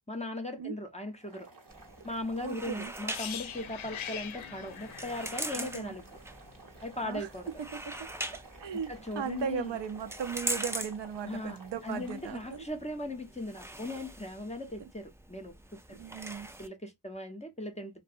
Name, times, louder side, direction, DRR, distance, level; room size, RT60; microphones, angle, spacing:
voice 1, 0.1-1.5 2.0-6.0 6.8-7.5 8.9-9.7 11.2-11.6 11.8-16.0 16.6-18.0, left 1 dB, 15° left, 0.7 m, -38 dB
Boiling, 1.1-12.7, right 3 dB, 45° right, 1.0 m, -54 dB
sound 1, 1.7-16.7, right 1 dB, 5° right, 0.3 m, -42 dB
voice 2, 2.4-2.9 5.5-5.9 7.0-7.3 7.6-8.1 8.6-12.7 15.9-16.5, right 7 dB, 65° right, 0.6 m, -37 dB
sound 2, 3.1-7.0 7.2-7.4, left 9 dB, 85° left, 0.6 m, -43 dB
2.6 x 2.1 x 2.5 m
cardioid pair, 50°, 46 cm